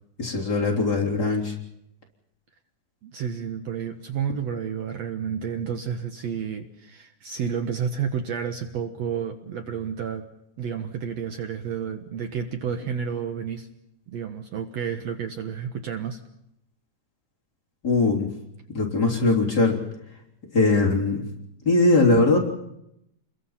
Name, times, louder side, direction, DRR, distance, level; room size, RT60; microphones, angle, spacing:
voice 1, 0.2-1.5 17.8-18.3 18.7-19.8 20.5-21.2 21.6-22.4, left 3 dB, 30° left, -2 dB, 3.9 m, -20 dB
voice 2, 3.0-10.2 10.6-13.7 14.1-16.2, right 7 dB, 60° right, 6 dB, 2.1 m, -30 dB
29.5 x 22.0 x 5.7 m, 0.81 s
omnidirectional pair, 3.7 m